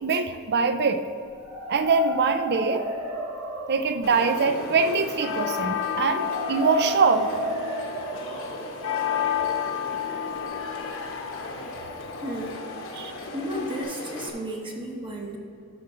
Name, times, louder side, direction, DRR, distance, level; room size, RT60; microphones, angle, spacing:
voice 1, 0.0-1.0 1.7-2.9 3.7-7.3 12.9-13.1, right 4 dB, 50° right, 9 dB, 0.5 m, -23 dB
sound 1, 1.3-11.1, equal, 80° right, 1.4 m, -35 dB
sound 2, 4.0-14.3, left 7 dB, 65° left, 1.1 m, -32 dB
voice 2, 12.2-12.6 13.3-15.4, equal, 25° right, -1 dB, 1.0 m, -33 dB
12.0 x 5.9 x 3.8 m, 2.6 s
head